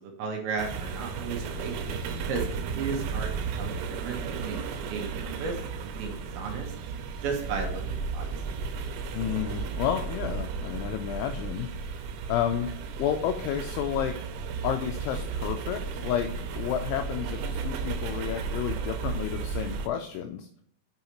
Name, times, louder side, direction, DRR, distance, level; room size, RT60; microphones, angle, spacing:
voice 1, 0.0-1.8 2.3-3.3 3.6-4.6 4.9-6.7 7.2-8.3, right 5 dB, 75° right, 1 dB, 3.0 m, -34 dB
freight train passing from right to left (binaural), 0.6-19.9, right 5 dB, 90° right, 3.5 m, -34 dB
voice 2, 9.1-12.7 13.0-14.2 14.6-20.5, left 10 dB, 90° left, 6 dB, 2.7 m, -31 dB
7.9 x 5.7 x 3.0 m, 0.66 s
omnidirectional pair, 5.9 m